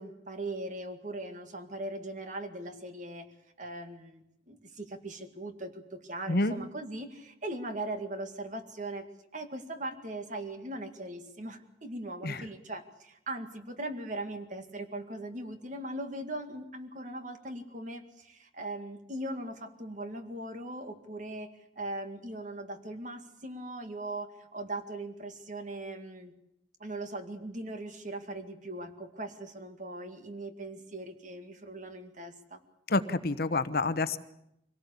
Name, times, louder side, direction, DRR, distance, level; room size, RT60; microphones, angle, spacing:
voice 1, 0.0-3.3 3.6-9.1 9.3-26.3 26.8-32.6, right 1 dB, 45° right, 7 dB, 2.1 m, -40 dB
voice 2, 6.3-6.6 12.2-12.5 32.9-34.2, left 2 dB, 55° left, 12 dB, 1.1 m, -28 dB
24.5 x 18.0 x 8.4 m, 0.81 s
head